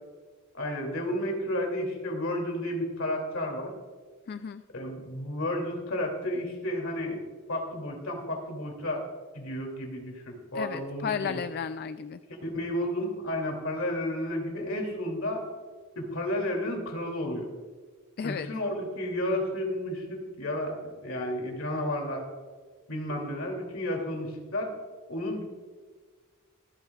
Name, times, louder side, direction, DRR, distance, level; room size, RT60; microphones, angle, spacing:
voice 1, 0.5-3.7 4.7-9.0 9.3-11.4 12.4-15.4 16.0-17.5 18.2-22.3 22.9-24.7 25.1-25.5, left 1 dB, 65° left, 2 dB, 2.6 m, -32 dB
voice 2, 4.3-4.6 10.5-12.2 18.2-18.5, left 6 dB, 45° left, 11 dB, 0.3 m, -33 dB
25.0 x 9.0 x 2.4 m, 1.5 s
head